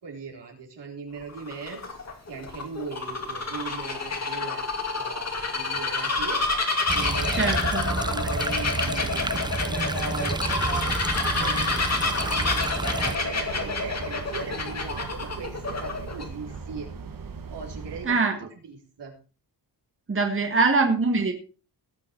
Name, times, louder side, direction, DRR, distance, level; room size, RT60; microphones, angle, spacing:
voice 1, 0.0-1.8 2.3-4.7 5.0-6.4 6.9-7.5 7.8-16.9 17.5-19.1, right 5 dB, 80° right, 0 dB, 4.3 m, -39 dB
Bird vocalization bird call bird song, 1.2-16.2, left 3 dB, 40° left, 2.6 m, -28 dB
sound 1, 6.9-13.2, right 3 dB, 10° right, 0.5 m, -30 dB
sound 2, 6.9-18.1, right 5 dB, 55° right, 1.7 m, -38 dB
voice 2, 7.3-7.8 18.0-18.3 20.1-21.3, right 3 dB, 30° right, 4 dB, 1.7 m, -23 dB
18.0 x 7.2 x 4.6 m, 0.35 s
wide cardioid pair, 135°, 41 cm